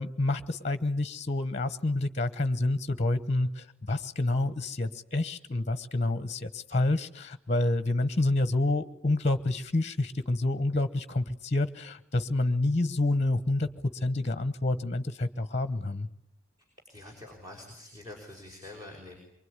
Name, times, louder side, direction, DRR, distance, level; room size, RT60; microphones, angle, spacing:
voice 1, 0.0-16.1, left 2 dB, 35° left, 13 dB, 1.1 m, -28 dB
voice 2, 16.9-19.2, left 2 dB, 20° right, 0 dB, 5.4 m, -46 dB
24.5 x 24.0 x 9.7 m, 0.75 s
head